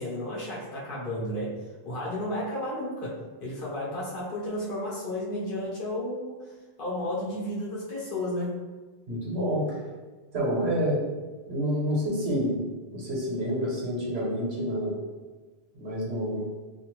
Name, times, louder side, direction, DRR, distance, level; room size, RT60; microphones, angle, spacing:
voice 1, 0.0-1.5 1.8-6.5 6.8-8.6, left 1 dB, 55° left, -7 dB, 1.1 m, -32 dB
voice 2, 9.1-9.8 10.3-11.0 11.5-12.6 12.9-15.0 15.7-16.4, equal, 85° right, -5 dB, 1.2 m, -28 dB
2.5 x 2.5 x 3.0 m, 1.3 s
omnidirectional pair, 1.1 m